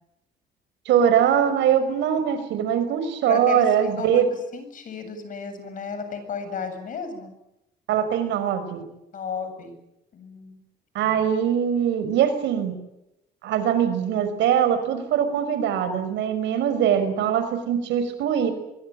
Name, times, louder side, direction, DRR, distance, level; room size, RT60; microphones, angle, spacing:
voice 1, 0.9-4.2 7.9-8.8 10.9-12.7 13.4-18.5, right 9 dB, 85° right, 10 dB, 5.7 m, -22 dB
voice 2, 3.2-7.3 9.1-9.8 10.1-10.6, left 5 dB, 45° left, 8 dB, 7.7 m, -34 dB
24.5 x 23.0 x 9.2 m, 0.87 s
cardioid pair, 140°, 18 cm